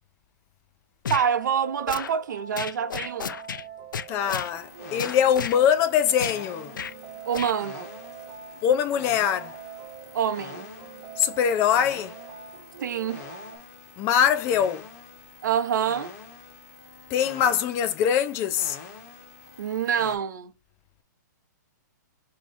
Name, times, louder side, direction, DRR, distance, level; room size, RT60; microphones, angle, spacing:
sound 1, 1.0-1.3 1.9-2.1 2.6-3.6 3.9-4.5 5.0-5.6 6.2-6.4 6.7-6.9 7.3-7.5, left 7 dB, 90° left, 0.4 m, -32 dB
sound 2, 1.1-13.6, right 8 dB, 35° right, 1.3 m, -43 dB
voice 1, 1.1-3.4 7.3-7.9 10.1-10.7 12.8-13.2 15.4-16.1 19.6-20.5, right 8 dB, 70° right, 0.7 m, -26 dB
voice 2, 4.1-6.7 8.6-9.5 11.2-12.1 14.0-14.9 17.1-18.8, left 8 dB, 25° left, 0.5 m, -23 dB
sound 3, 4.2-20.2, left 5 dB, 45° left, 1.5 m, -46 dB
5.2 x 3.0 x 2.6 m
hypercardioid pair, 145°, 10 cm